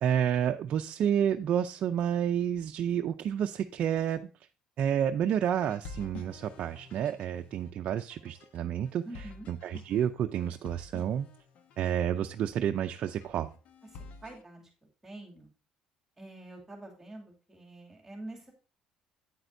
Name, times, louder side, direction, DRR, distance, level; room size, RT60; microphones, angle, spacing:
voice 1, 0.0-4.3 4.8-9.0 9.5-11.3 11.8-13.5, right 9 dB, 55° right, 5 dB, 0.5 m, -30 dB
sound 1, 5.6-14.4, left 4 dB, 65° left, 1.1 m, -50 dB
voice 2, 9.0-9.5 14.2-14.7 15.0-15.5 16.2-18.5, right 2 dB, 10° right, -1 dB, 2.4 m, -46 dB
9.0 x 7.7 x 2.6 m, 0.34 s
cardioid pair, 120°, 3 cm